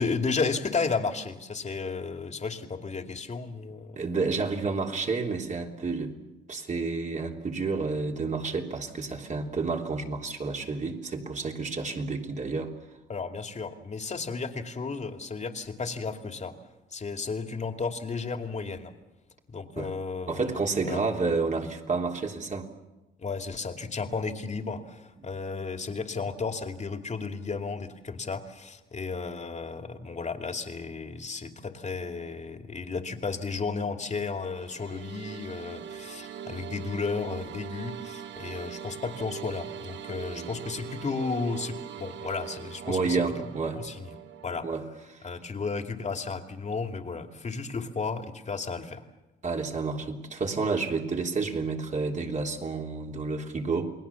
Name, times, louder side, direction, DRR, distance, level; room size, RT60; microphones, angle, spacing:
voice 1, 0.0-4.0 13.1-16.5 16.9-18.9 19.5-21.0 23.2-43.4 43.8-44.1 44.4-44.7 45.2-49.0, left 4 dB, 35° left, 6 dB, 2.6 m, -33 dB
voice 2, 4.0-6.2 6.5-12.7 19.8-19.9 20.3-22.7 25.2-25.3 40.3-40.5 42.8-43.8 44.6-45.2 49.4-53.9, right 4 dB, 40° right, 2 dB, 3.4 m, -30 dB
sound 1, 34.4-44.6, right 8 dB, 65° right, 1.4 m, -41 dB
29.5 x 20.5 x 7.2 m, 1.1 s
cardioid pair, 90°, 20 cm